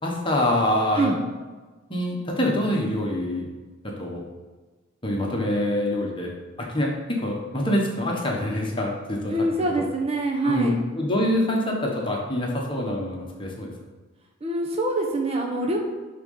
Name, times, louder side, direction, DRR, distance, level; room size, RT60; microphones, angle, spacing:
voice 1, 0.0-1.2 1.9-3.5 4.0-4.2 5.0-6.3 6.6-9.3 9.6-9.8 10.4-13.7, left 1 dB, 25° left, -1 dB, 1.4 m, -25 dB
voice 2, 9.3-10.8 14.4-15.8, right 2 dB, 30° right, 0 dB, 0.9 m, -24 dB
11.5 x 3.9 x 5.6 m, 1.3 s
head